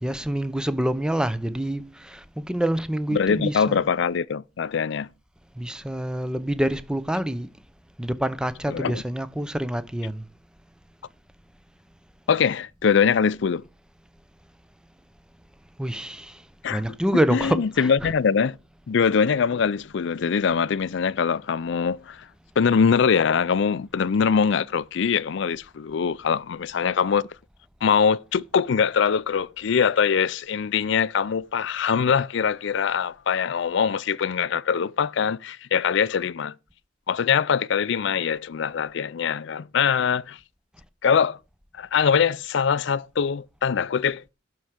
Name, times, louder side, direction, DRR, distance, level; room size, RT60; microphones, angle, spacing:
voice 1, 0.0-3.8 5.5-7.5 8.0-10.2 15.8-16.4 16.7-18.1, right 1 dB, 5° right, 0.7 m, -27 dB
voice 2, 3.1-5.1 8.7-9.0 12.3-13.6 16.6-17.0 17.3-18.6 18.9-22.3 22.6-27.2 27.8-36.5 37.1-40.4 41.0-41.4 41.8-44.3, left 6 dB, 65° left, 0.4 m, -23 dB
11.5 x 4.7 x 6.5 m
head